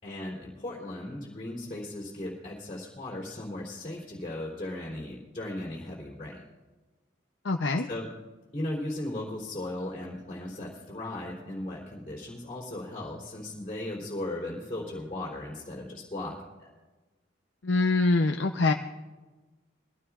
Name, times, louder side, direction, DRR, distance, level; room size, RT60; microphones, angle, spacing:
voice 1, 0.0-6.4 7.9-8.1 8.5-16.7, left 1 dB, 30° left, -6 dB, 3.4 m, -37 dB
voice 2, 7.4-7.9 17.6-18.7, left 3 dB, 70° left, 4 dB, 0.7 m, -24 dB
23.0 x 15.5 x 2.4 m, 1.2 s
head